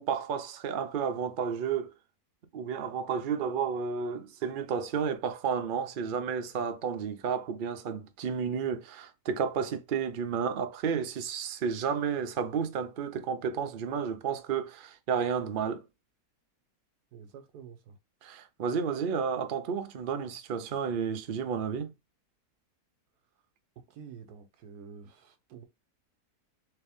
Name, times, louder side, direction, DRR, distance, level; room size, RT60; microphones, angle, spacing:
voice 1, 0.0-1.9 2.5-15.8 18.2-21.9, right 6 dB, 65° right, 0.5 m, -32 dB
voice 2, 17.1-18.0 23.9-25.6, right 6 dB, 85° right, 1.3 m, -48 dB
3.4 x 3.2 x 3.5 m
omnidirectional pair, 1.7 m